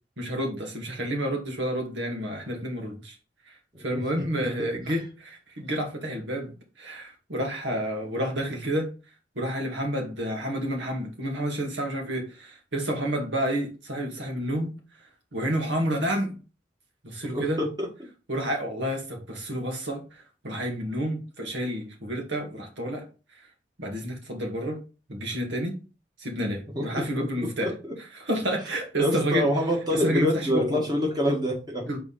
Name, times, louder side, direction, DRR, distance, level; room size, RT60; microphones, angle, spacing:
voice 1, 0.2-3.2 3.5-3.6 3.8-6.5 6.8-8.9 9.4-14.7 15.3-16.4 17.0-17.6 18.3-23.1 23.8-24.8 25.1-25.8 26.2-27.7 28.2-29.5 29.9-30.8 31.9-32.0, equal, 85° right, 2 dB, 2.0 m, -30 dB
voice 2, 3.7-4.5 4.9-5.0 17.3-17.9 26.7-27.9 29.0-32.0, left 1 dB, 20° right, 0 dB, 1.6 m, -27 dB
4.6 x 3.9 x 5.7 m, 0.33 s
head